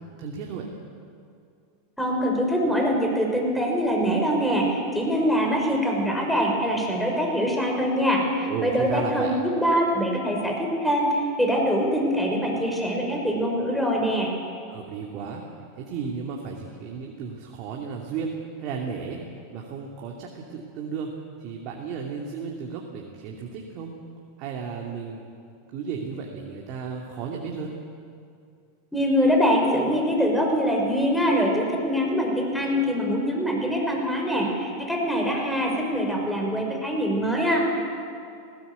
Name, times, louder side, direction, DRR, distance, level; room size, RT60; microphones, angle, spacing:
voice 1, 0.2-0.7 8.4-9.3 14.7-15.4 15.8-19.2 19.5-21.1 21.4-23.9 24.4-25.2 25.7-27.7, right 6 dB, 50° right, 0 dB, 2.6 m, -34 dB
voice 2, 2.0-14.3 28.9-37.8, equal, 5° left, 0 dB, 5.7 m, -24 dB
18.5 x 17.5 x 8.3 m, 2.4 s
hypercardioid pair, 95°, 0 cm